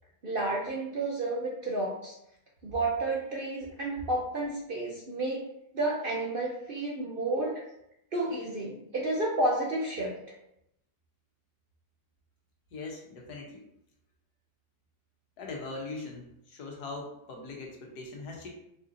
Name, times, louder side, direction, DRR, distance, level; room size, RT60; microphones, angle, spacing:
voice 1, 0.2-2.1 2.6-5.5 5.7-7.6 8.1-10.1, right 2 dB, 55° right, -3 dB, 0.6 m, -31 dB
voice 2, 12.7-13.6 15.4-18.5, left 3 dB, 85° left, 0 dB, 1.5 m, -41 dB
4.7 x 3.9 x 2.6 m, 0.80 s
omnidirectional pair, 1.7 m